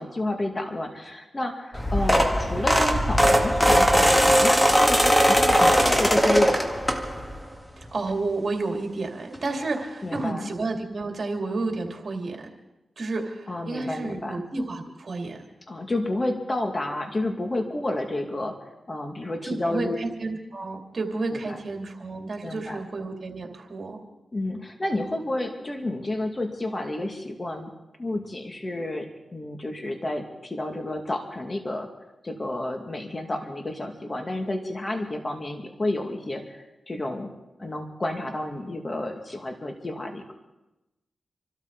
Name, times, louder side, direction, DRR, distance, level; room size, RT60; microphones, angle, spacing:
voice 1, 0.0-6.7 10.0-10.5 13.5-14.4 15.7-18.5 18.9-20.0 21.3-21.6 22.4-22.8 24.3-27.7 28.0-29.1 29.3-31.9 32.2-37.3 37.6-40.3, left 1 dB, 35° left, 4 dB, 2.3 m, -30 dB
sound 1, 1.7-7.4 7.8-8.1 9.3-9.4 9.7-9.8 10.1-10.2, equal, 10° left, 2.0 m, -20 dB
voice 2, 7.8-12.5 13.0-15.4 19.4-24.0, right 3 dB, 55° right, 2 dB, 2.8 m, -31 dB
26.5 x 13.0 x 4.1 m, 0.99 s
cardioid pair, 50°, 0 cm